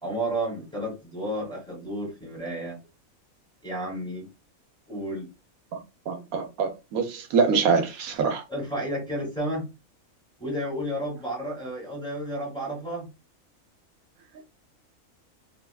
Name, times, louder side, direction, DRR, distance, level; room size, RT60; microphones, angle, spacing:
voice 1, 0.0-2.8 3.6-4.3 4.9-5.3 8.5-9.6 10.4-13.1, right 1 dB, 5° left, 1.9 m, -31 dB
voice 2, 6.1-8.4, right 5 dB, 90° right, 1.2 m, -25 dB
3.4 x 3.2 x 2.3 m
omnidirectional pair, 1.5 m